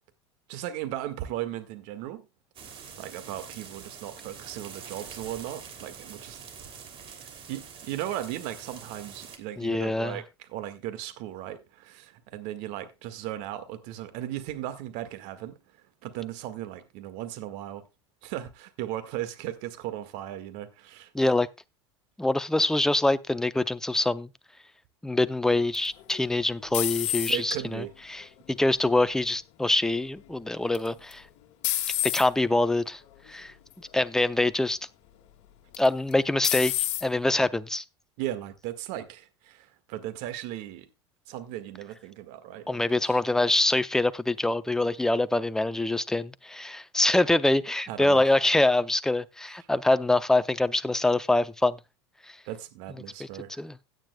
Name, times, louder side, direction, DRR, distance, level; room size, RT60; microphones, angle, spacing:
voice 1, 0.5-2.3 3.0-6.4 7.5-15.6 16.0-17.9 18.2-21.1 27.3-27.9 38.2-40.9 41.3-43.2 47.9-48.2 52.5-53.6, right 13 dB, 60° right, 1.7 m, -37 dB
sound 1, 2.5-9.4, right 6 dB, 40° right, 2.9 m, -45 dB
voice 2, 9.6-10.2 21.1-21.5 22.2-24.3 25.0-27.8 28.1-31.2 32.0-33.0 33.3-34.8 35.8-37.8 42.7-51.8 52.3-52.4 53.2-53.3 53.6-53.8, left 2 dB, 5° left, 0.6 m, -25 dB
sound 2, 25.7-27.7 28.2-28.7 30.7-31.1 31.6-32.3 33.1-33.3 33.7-33.8 35.7-36.1 36.4-37.1, left 15 dB, 55° left, 1.8 m, -29 dB
16.5 x 9.3 x 2.3 m
hypercardioid pair, 85°, 14 cm